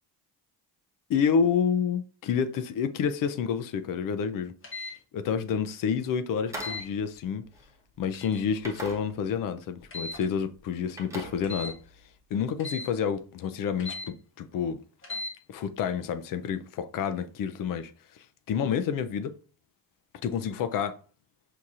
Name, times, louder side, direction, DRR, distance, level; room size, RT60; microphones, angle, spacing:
voice 1, 1.1-7.4 8.0-11.8 12.3-14.8 15.5-19.4 20.2-21.0, left 7 dB, 55° left, 0.5 m, -29 dB
sound 1, 4.6-4.9 6.6-6.9 8.1-8.4 9.9-10.2 11.4-11.8 12.6-12.9 13.8-14.1 15.0-15.3, left 2 dB, 30° left, 1.2 m, -37 dB
sound 2, 6.4-8.1 8.6-9.5 9.8-10.2 10.5-12.1, right 1 dB, 5° right, 0.7 m, -43 dB
6.2 x 2.8 x 2.4 m
cardioid pair, 150°, 40 cm